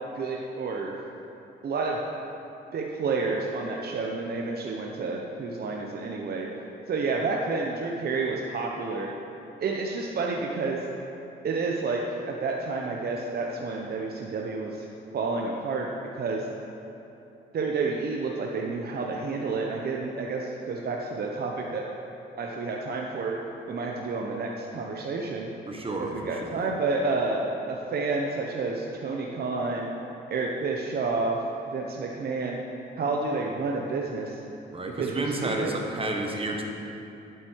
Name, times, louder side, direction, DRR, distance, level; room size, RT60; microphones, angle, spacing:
voice 1, 0.2-1.0 1.6-2.0 2.7-6.5 6.9-9.1 9.6-10.8 11.4-12.0 12.3-14.9 15.1-15.9 16.1-16.5 17.5-21.8 22.4-23.4 23.7-25.5 26.0-29.9 30.3-31.4 31.7-32.6 33.0-34.3 34.9-35.7, right 3 dB, 50° right, -1 dB, 1.0 m, -30 dB
voice 2, 25.7-26.7 34.7-36.6, right 2 dB, 30° right, 1 dB, 1.5 m, -31 dB
11.0 x 8.4 x 4.7 m, 2.9 s
cardioid pair, 90°, 20 cm